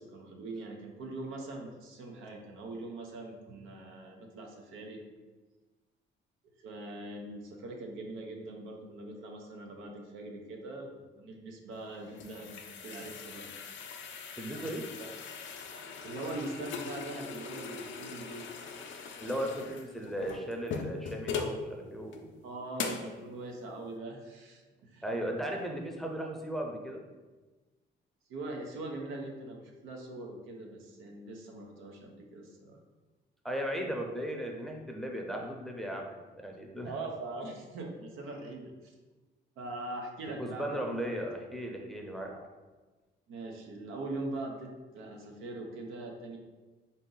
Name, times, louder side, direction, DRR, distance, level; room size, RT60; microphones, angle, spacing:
voice 1, 0.0-5.0 6.6-13.5 14.6-15.1 16.0-18.5 22.4-25.0 28.3-32.8 36.8-38.9 39.6-41.1 42.2-42.4 43.3-46.4, right 2 dB, 90° right, 1 dB, 0.7 m, -42 dB
sound 1, 11.8-21.6 22.1-22.2 22.8-23.1, left 5 dB, 70° left, 0.5 m, -40 dB
voice 2, 14.4-14.8 19.2-22.3 25.0-27.1 33.4-36.1 36.4-36.9 40.4-42.3, equal, ahead, 0 dB, 0.6 m, -36 dB
3.8 x 2.7 x 3.8 m, 1.3 s
cardioid pair, 90°, 20 cm